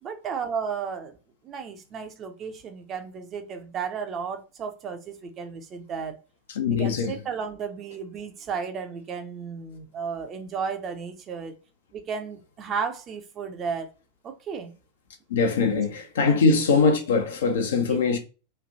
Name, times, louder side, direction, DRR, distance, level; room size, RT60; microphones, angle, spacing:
voice 1, 0.0-1.2 1.4-6.2 6.7-11.6 11.9-13.9 14.2-14.7 15.7-15.8 16.2-16.4 17.8-18.0, right 6 dB, 30° right, 0.7 m, -34 dB
voice 2, 6.6-7.1 15.3-18.2, left 4 dB, 60° left, 0.7 m, -22 dB
3.2 x 2.5 x 3.9 m
figure-of-eight pair, 90°, 0 cm